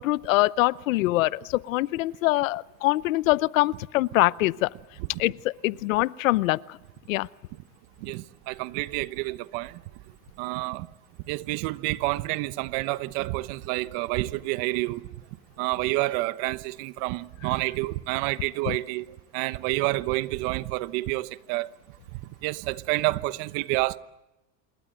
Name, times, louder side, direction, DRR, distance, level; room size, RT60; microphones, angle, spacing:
voice 1, 0.0-4.7 5.2-6.8 7.1-7.3 18.7-18.8, left 18 dB, 90° left, 0.8 m, -24 dB
voice 2, 8.0-9.8 10.4-10.9 11.3-15.0 15.6-19.1 19.3-21.7 22.4-24.0, right 20 dB, 55° right, 1.1 m, -29 dB
27.5 x 22.0 x 7.6 m
supercardioid pair, 140°, 39 cm